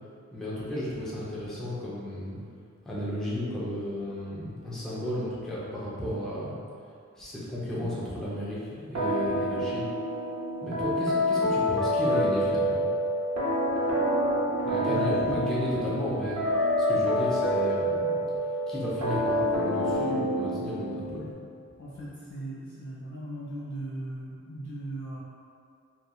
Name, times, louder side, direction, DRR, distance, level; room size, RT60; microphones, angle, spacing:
voice 1, 0.3-2.4 2.8-6.6 7.1-9.9 10.6-12.9 14.6-18.3 18.7-21.3, left 1 dB, ahead, -9 dB, 0.7 m, -33 dB
sound 1, 9.0-21.3, equal, 65° right, 0.6 m, -27 dB
voice 2, 14.8-15.5 21.8-25.2, right 1 dB, 75° left, -10 dB, 1.2 m, -38 dB
3.0 x 2.6 x 2.3 m, 2.3 s
wide cardioid pair, 60°, 29 cm